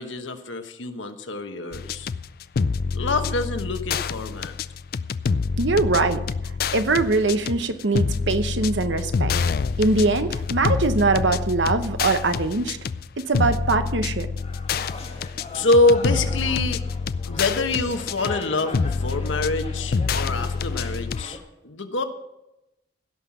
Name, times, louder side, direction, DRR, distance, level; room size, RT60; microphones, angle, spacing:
voice 1, 0.0-2.1 2.9-4.5 15.5-16.8 17.3-21.4 21.6-22.0, left 2 dB, 90° left, 7 dB, 1.2 m, -25 dB
sound 1, 1.7-21.2, left 5 dB, 50° left, 0.4 m, -27 dB
voice 2, 5.6-6.2 6.7-9.3 9.8-12.8 13.2-14.3, right 3 dB, 75° right, 10 dB, 1.0 m, -22 dB
sound 2, 14.4-21.4, left 3 dB, 35° left, 1.7 m, -39 dB
16.5 x 5.8 x 7.2 m, 0.91 s
head